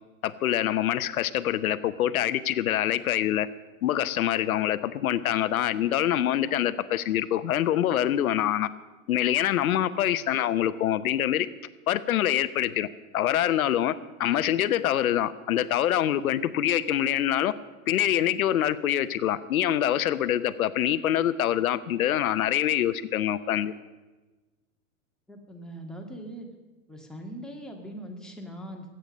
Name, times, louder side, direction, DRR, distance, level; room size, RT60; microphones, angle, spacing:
voice 1, 0.2-3.5 3.8-8.7 9.1-11.5 11.9-12.9 13.1-17.5 17.9-23.7, left 11 dB, 80° left, 14 dB, 0.9 m, -25 dB
voice 2, 25.3-26.5 26.9-28.9, right 1 dB, ahead, 0 dB, 2.0 m, -41 dB
21.5 x 9.0 x 5.3 m, 1.2 s
hypercardioid pair, 125°, 42 cm